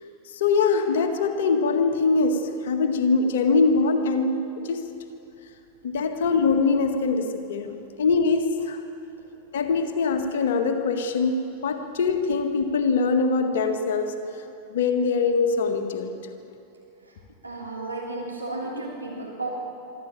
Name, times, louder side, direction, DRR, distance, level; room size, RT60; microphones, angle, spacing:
voice 1, 0.3-4.8 5.8-7.7 8.0-8.8 9.5-14.1 14.7-16.2, left 4 dB, 60° left, 6 dB, 1.9 m, -23 dB
voice 2, 17.4-19.5, right 2 dB, 85° right, -3 dB, 3.2 m, -33 dB
25.0 x 13.0 x 9.0 m, 2.8 s
figure-of-eight pair, 90°, 0 cm